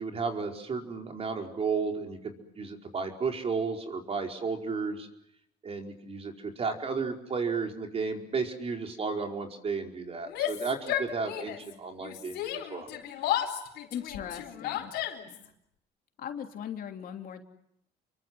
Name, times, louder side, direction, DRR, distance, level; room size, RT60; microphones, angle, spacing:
voice 1, 0.0-5.1 5.6-12.9, right 4 dB, 35° right, 3 dB, 4.9 m, -33 dB
Yell, 10.3-11.7 12.0-15.5, left 11 dB, 85° left, 4.4 m, -33 dB
voice 2, 13.9-14.9 15.3-15.4 16.2-17.4, left 9 dB, 60° left, 4 dB, 3.2 m, -39 dB
30.0 x 23.5 x 7.9 m, 0.76 s
cardioid pair, 110°, 17 cm